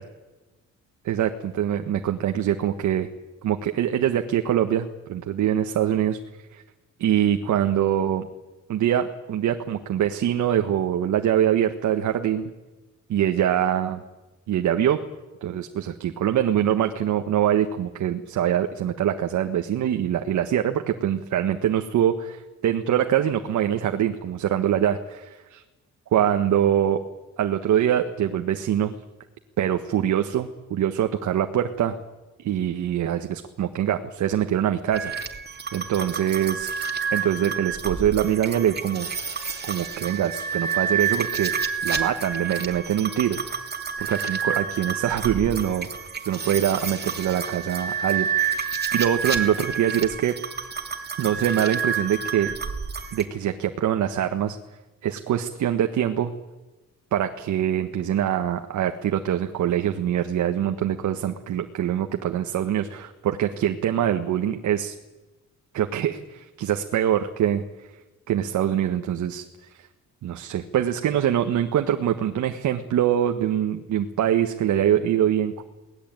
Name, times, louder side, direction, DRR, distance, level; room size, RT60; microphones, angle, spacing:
voice 1, 1.0-3.1 3.4-6.2 6.5-6.6 7.0-8.3 8.7-12.5 13.1-14.0 14.5-15.0 15.4-25.6 26.1-27.0 27.4-28.9 29.6-31.9 32.4-35.1 35.7-36.7 37.1-39.1 39.6-41.5 41.8-43.7 44.0-45.9 46.2-48.6 48.9-50.4 51.2-52.5 53.1-54.6 55.0-56.3 57.1-64.9 65.7-67.9 68.3-69.4 69.7-69.9 70.2-75.6, right 10 dB, 70° right, 6 dB, 1.5 m, -24 dB
sound 1, 34.9-53.2, right 6 dB, 35° right, 2.9 m, -29 dB
23.0 x 18.5 x 9.0 m, 1.1 s
cardioid pair, 90°, 30 cm